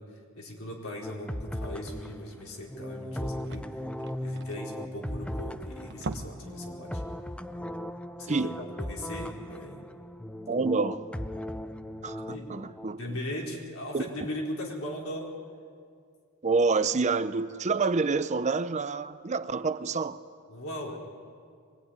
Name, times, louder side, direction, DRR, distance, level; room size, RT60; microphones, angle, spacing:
voice 1, 0.0-3.8 4.2-7.0 8.2-9.8 12.2-12.5 12.9-15.3 20.5-21.0, left 1 dB, 70° left, 4.9 m, -38 dB
sound 1, 1.0-12.9, left 1 dB, 5° left, 0.5 m, -38 dB
sound 2, 2.4-2.5 2.8-2.9 3.1-5.4 5.8-6.6 6.9-7.1 7.5-7.6, right 2 dB, 55° right, 1.0 m, -40 dB
voice 2, 10.5-11.1 12.0-13.0 13.9-14.0 16.4-20.2, right 4 dB, 35° right, 0.6 m, -27 dB
23.0 x 20.0 x 9.7 m
head